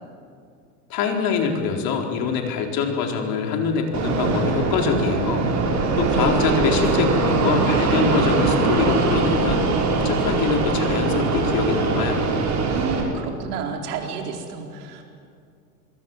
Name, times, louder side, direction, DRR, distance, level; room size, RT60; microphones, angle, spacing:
voice 1, 0.9-5.4 6.0-9.6 9.9-12.4, left 5 dB, 50° left, 3 dB, 4.4 m, -24 dB
Fixed-wing aircraft airplane, 3.9-13.0, right 3 dB, 35° right, 6.2 m, -21 dB
voice 2, 5.8-6.6 12.7-15.0, right 5 dB, 75° right, 2 dB, 4.4 m, -31 dB
27.5 x 21.5 x 7.4 m, 2.3 s
supercardioid pair, 110°, 46 cm